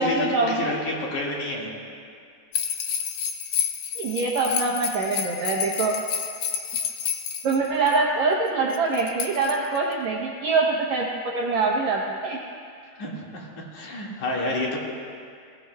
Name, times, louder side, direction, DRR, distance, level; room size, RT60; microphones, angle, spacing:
voice 1, 0.0-0.7 4.0-5.9 7.4-12.4, right 3 dB, 90° right, -2 dB, 1.5 m, -24 dB
voice 2, 0.6-1.7 13.0-14.8, left 2 dB, 55° left, -4 dB, 3.0 m, -29 dB
sound 1, 2.5-8.0 8.7-9.9, left 8 dB, 85° left, 1.8 m, -29 dB
21.5 x 16.5 x 2.3 m, 2.3 s
omnidirectional pair, 4.6 m